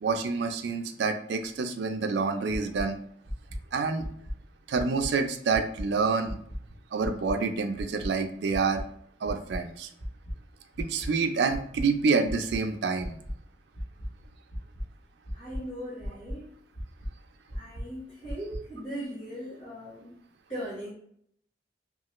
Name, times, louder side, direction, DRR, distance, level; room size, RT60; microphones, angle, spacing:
voice 1, 0.0-3.0 3.7-4.1 4.7-6.3 6.9-8.9 9.2-9.9 10.8-13.2, right 4 dB, 75° right, 6 dB, 0.4 m, -27 dB
sound 1, 2.5-2.8 3.2-3.6 4.0-4.3 4.7-5.1 5.5-5.8 6.2-6.6 7.0-7.3 7.7-8.1 8.5-8.8 9.2-9.6 10.0-10.3 10.7-11.1 11.5-11.8 12.2-12.6 13.0-13.3 13.7-14.1 14.5-14.8 15.2-15.6 16.0-16.3 16.7-17.1 17.5-17.8 18.2-18.6, equal, 70° left, 0.9 m, -36 dB
voice 2, 15.3-16.5 17.5-20.2 20.5-20.9, equal, 30° left, -10 dB, 1.1 m, -39 dB
3.1 x 2.3 x 2.9 m, 0.66 s
head